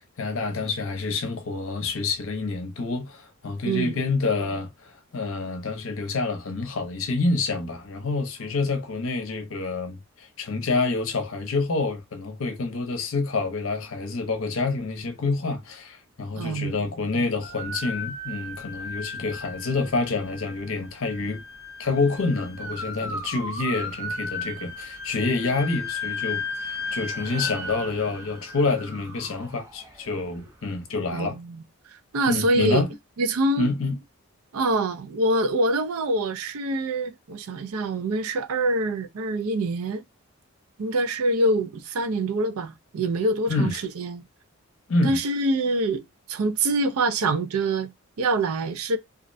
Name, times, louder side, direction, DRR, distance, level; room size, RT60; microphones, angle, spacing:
voice 1, 0.2-21.4 21.8-31.4 32.3-32.9 33.6-34.0 43.5-43.8 44.9-45.2, left 3 dB, 65° left, 0.6 m, -27 dB
voice 2, 16.4-16.8 31.1-31.6 32.1-32.9 33.2-33.7 34.5-40.0 40.8-44.2 45.0-49.0, right 2 dB, 75° right, 0.4 m, -25 dB
sound 1, 17.4-30.5, left 3 dB, 15° right, 0.4 m, -35 dB
2.4 x 2.0 x 2.5 m
head